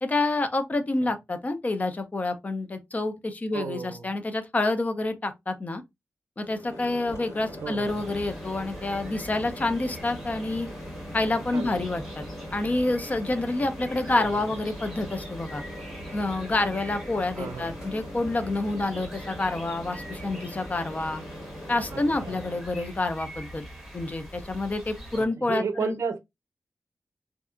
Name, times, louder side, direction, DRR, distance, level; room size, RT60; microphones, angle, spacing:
voice 1, 0.0-5.8 6.4-10.7 11.1-12.2 12.5-15.6 16.1-21.2 21.7-23.6 23.9-26.0, left 2 dB, 30° left, 0.5 m, -28 dB
voice 2, 3.5-4.1 7.6-8.0 11.5-11.8 14.1-14.2 17.4-17.7 21.9-22.3 25.1-26.2, right 5 dB, 65° right, 0.6 m, -33 dB
Microwave oven, 6.4-22.7, equal, 70° left, 1.5 m, -41 dB
sound 1, 7.8-25.3, right 1 dB, ahead, 0.9 m, -43 dB
2.6 x 2.4 x 2.3 m
wide cardioid pair, 125°, 5 cm